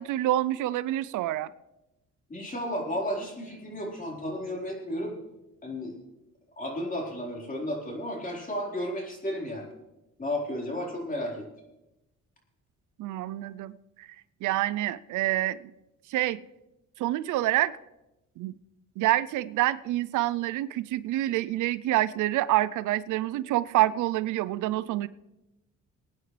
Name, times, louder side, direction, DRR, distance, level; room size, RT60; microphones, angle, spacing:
voice 1, 0.0-1.5 13.0-13.7 14.0-14.1 14.4-15.7 16.1-16.4 17.0-17.8 18.4-18.5 19.0-25.1, right 15 dB, 85° right, 17 dB, 0.5 m, -27 dB
voice 2, 2.3-5.1 5.6-5.9 6.6-9.7 10.2-11.4, left 1 dB, 30° left, -1 dB, 4.3 m, -33 dB
23.5 x 9.3 x 3.3 m, 0.95 s
cardioid pair, 90°, 30 cm